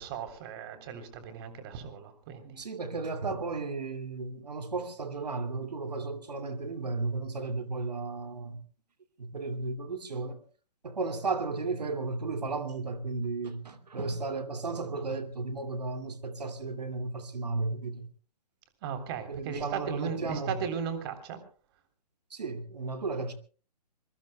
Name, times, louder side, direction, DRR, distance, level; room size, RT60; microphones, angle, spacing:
voice 1, 0.0-2.6 18.8-21.4, right 7 dB, 35° right, 3.4 m, -37 dB
voice 2, 2.6-8.6 9.2-10.4 10.8-18.1 19.3-20.6 22.3-23.3, right 3 dB, 70° right, 2.5 m, -34 dB
25.5 x 22.5 x 2.2 m
figure-of-eight pair, 130°, 21 cm